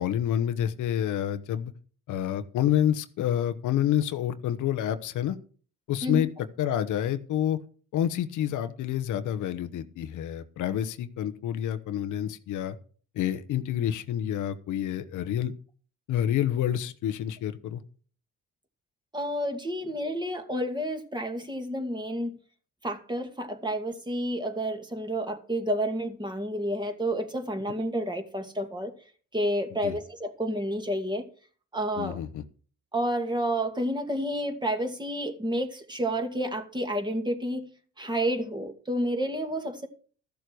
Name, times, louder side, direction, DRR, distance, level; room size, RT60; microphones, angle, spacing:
voice 1, 0.0-1.7 2.1-5.4 5.9-6.3 6.6-7.6 7.9-12.8 13.2-15.5 16.1-17.8 29.8-30.0 32.0-32.4, left 10 dB, 80° left, 11 dB, 1.0 m, -28 dB
voice 2, 19.1-22.4 22.8-28.9 29.3-31.3 31.7-32.2 32.9-37.7 38.0-39.9, equal, 15° right, 5 dB, 2.3 m, -30 dB
13.5 x 7.0 x 6.3 m, 0.42 s
cardioid pair, 90°, 30 cm